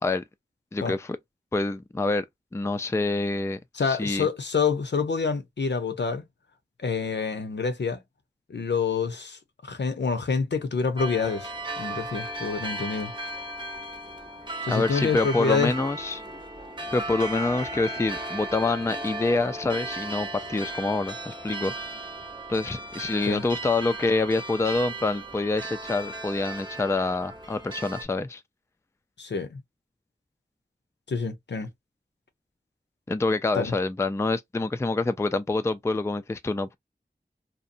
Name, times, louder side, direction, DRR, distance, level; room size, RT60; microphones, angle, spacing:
voice 1, 0.7-1.2 1.5-2.3 2.5-4.3 14.7-16.2 16.9-21.7 22.5-28.4 33.1-36.8, left 3 dB, 15° left, 0.3 m, -26 dB
voice 2, 3.7-6.2 6.8-8.0 8.5-11.5 11.8-13.1 14.6-15.7 23.2-23.4 29.2-29.6 31.1-31.7 33.5-33.7, left 5 dB, 75° left, 0.6 m, -27 dB
sound 1, 11.0-28.0, right 1 dB, 25° right, 0.8 m, -36 dB
2.7 x 2.1 x 2.4 m
wide cardioid pair, 55°, 18 cm